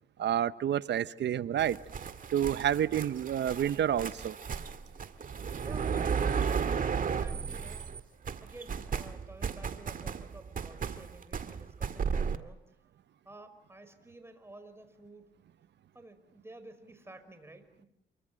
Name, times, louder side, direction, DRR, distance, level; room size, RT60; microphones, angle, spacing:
voice 1, 0.2-1.8 2.3-4.4, right 10 dB, 60° right, 1.0 m, -29 dB
sound 1, 1.6-8.0 8.2-12.4, right 6 dB, 45° right, 1.9 m, -34 dB
voice 2, 5.6-6.6 7.2-7.9 8.4-12.6 13.2-15.3 15.9-17.9, right 2 dB, 10° right, 5.4 m, -52 dB
28.5 x 24.0 x 7.7 m
cardioid pair, 90°, 20 cm